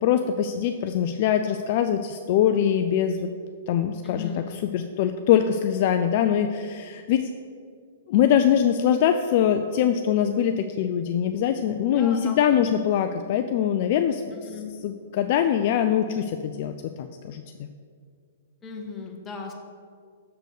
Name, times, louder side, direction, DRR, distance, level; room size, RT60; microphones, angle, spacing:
voice 1, 0.0-3.3 3.7-7.3 8.1-14.5 14.8-17.7, left 9 dB, 50° left, 7 dB, 0.3 m, -23 dB
voice 2, 4.0-4.6 11.9-12.6 14.3-14.7 18.6-19.5, left 5 dB, 20° left, 1 dB, 1.1 m, -37 dB
6.6 x 4.0 x 6.5 m, 2.1 s
hypercardioid pair, 120°, 0 cm